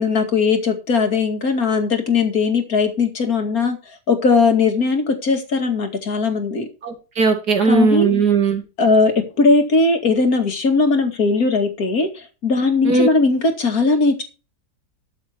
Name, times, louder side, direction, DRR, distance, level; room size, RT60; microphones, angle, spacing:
voice 1, 0.0-3.8 4.1-6.7 7.7-8.2 8.8-14.2, left 4 dB, 60° left, 5 dB, 2.7 m, -18 dB
voice 2, 6.8-8.6 12.8-13.1, right 4 dB, 70° right, 4 dB, 3.2 m, -17 dB
13.5 x 6.9 x 4.6 m, 0.32 s
omnidirectional pair, 1.8 m